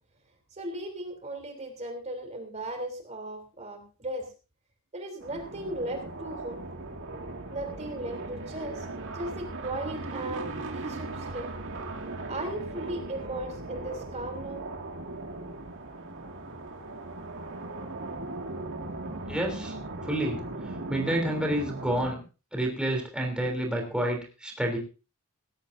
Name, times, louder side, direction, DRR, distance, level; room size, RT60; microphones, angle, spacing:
voice 1, 0.5-4.3 4.9-6.6 7.5-8.9 9.1-11.5 12.3-14.6, right 1 dB, 30° right, 4 dB, 3.3 m, -37 dB
sound 1, 5.2-22.1, right 2 dB, 60° right, 2.3 m, -38 dB
voice 2, 19.3-19.8 20.0-20.4 20.9-22.2 22.5-24.8, right 1 dB, 5° right, 0 dB, 3.2 m, -29 dB
18.0 x 16.0 x 2.7 m, 0.33 s
head